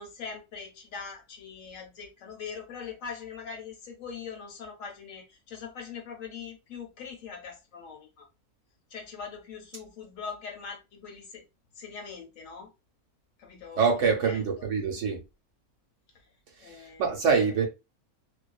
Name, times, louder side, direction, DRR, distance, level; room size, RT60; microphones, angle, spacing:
voice 1, 0.0-8.3 8.9-11.4 11.7-12.7 13.4-13.9 14.2-14.6 16.1-16.3 16.6-17.6, left 6 dB, 70° left, 1.0 m, -42 dB
voice 2, 13.8-15.2 16.6-17.7, right 5 dB, 65° right, 0.9 m, -25 dB
2.4 x 2.2 x 2.3 m
omnidirectional pair, 1.6 m